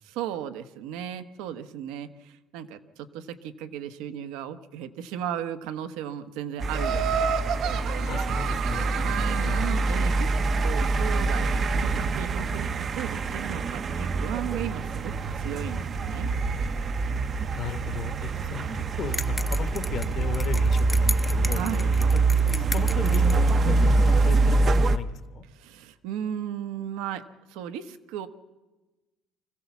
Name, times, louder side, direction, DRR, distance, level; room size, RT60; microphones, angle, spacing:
voice 1, 0.0-7.3 7.6-8.2 9.0-10.3 10.6-16.3 21.5-22.1 25.5-28.3, right 10 dB, 90° right, 9 dB, 1.1 m, -35 dB
sound 1, 6.6-25.0, right 3 dB, 30° right, 0.6 m, -25 dB
Laughter, 6.7-9.9, right 7 dB, 60° right, 1.2 m, -31 dB
voice 2, 8.0-9.1 9.4-9.7 17.6-18.7 19.0-21.6 22.1-25.4, left 8 dB, 45° left, 10 dB, 1.2 m, -36 dB
sound 2, 19.1-23.5, left 3 dB, 10° left, 0.6 m, -35 dB
24.0 x 15.5 x 7.1 m, 1.2 s
cardioid pair, 150°, 0 cm